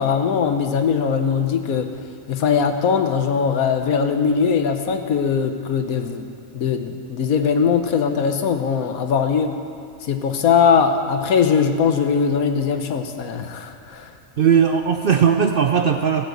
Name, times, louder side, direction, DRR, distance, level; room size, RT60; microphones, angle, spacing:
voice 1, 0.0-1.9 2.3-6.2 6.5-9.6 10.0-14.1, left 6 dB, 90° left, 6 dB, 1.4 m, -20 dB
voice 2, 14.4-16.3, right 7 dB, 60° right, 6 dB, 0.6 m, -18 dB
15.0 x 7.9 x 7.9 m, 2.3 s
omnidirectional pair, 1.5 m